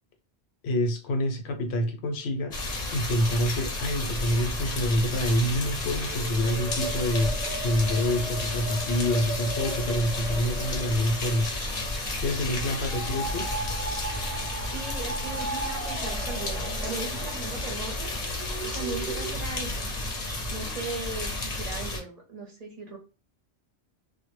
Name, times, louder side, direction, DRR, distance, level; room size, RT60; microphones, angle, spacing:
voice 1, 0.6-2.5 2.9-7.3 7.6-11.5 12.2-13.4, equal, 75° left, 0.8 m, -27 dB
sound 1, 2.5-22.0, left 2 dB, 45° left, 0.6 m, -32 dB
sound 2, 6.0-19.3, right 3 dB, 15° right, 0.9 m, -38 dB
voice 2, 14.6-18.1 18.6-19.9 20.5-23.0, right 3 dB, 45° right, 0.6 m, -38 dB
2.1 x 2.0 x 3.0 m
omnidirectional pair, 1.1 m